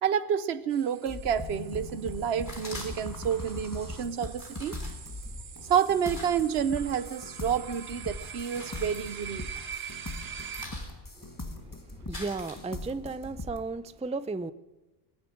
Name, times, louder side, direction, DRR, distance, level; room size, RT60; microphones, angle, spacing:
voice 1, 0.0-4.8 5.7-9.5, right 8 dB, 90° right, 16 dB, 1.1 m, -29 dB
sound 1, 0.7-10.7, right 7 dB, 45° right, 0.6 m, -44 dB
sound 2, 1.1-13.6, left 2 dB, 20° left, 1.4 m, -41 dB
sound 3, 2.4-3.3 4.1-7.0 7.4-7.9 8.3-9.8 10.1-13.1, left 1 dB, 50° left, 3.3 m, -46 dB
voice 2, 12.0-14.5, right 3 dB, 10° right, 14 dB, 0.3 m, -34 dB
19.5 x 7.4 x 9.9 m, 1.1 s
omnidirectional pair, 1.0 m